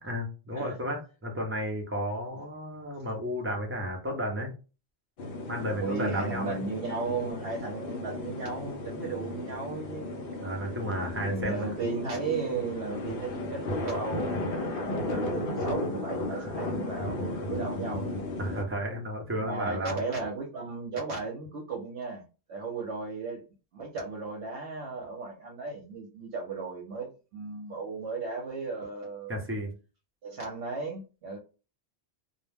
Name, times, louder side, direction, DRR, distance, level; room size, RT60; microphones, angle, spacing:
voice 1, 0.0-4.5 5.5-6.6 10.4-11.7 15.1-15.2 16.3-16.5 18.4-20.0 29.3-29.7, equal, 15° right, 0.6 m, -33 dB
sound 1, 5.2-18.6, left 2 dB, 60° left, 0.7 m, -35 dB
voice 2, 5.8-10.2 11.2-18.1 19.4-22.2 22.5-23.4 23.7-29.4 30.2-31.4, right 4 dB, 75° right, 0.9 m, -35 dB
2.3 x 2.1 x 3.3 m
omnidirectional pair, 1.1 m